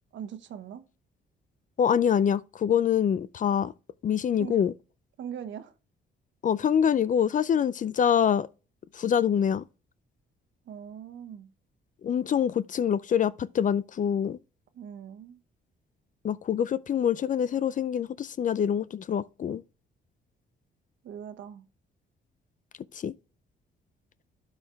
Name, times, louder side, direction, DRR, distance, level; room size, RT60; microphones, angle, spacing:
voice 1, 0.1-0.9 4.4-4.6 5.2-5.7 10.7-11.5 14.7-15.4 21.0-21.6, right 8 dB, 70° right, 1.1 m, -41 dB
voice 2, 1.8-3.7 4.0-4.7 6.4-8.5 8.9-9.6 12.0-14.4 16.2-19.6 22.9-23.1, left 8 dB, 40° left, 0.4 m, -25 dB
12.0 x 4.5 x 3.4 m
cardioid pair, 90°, 20 cm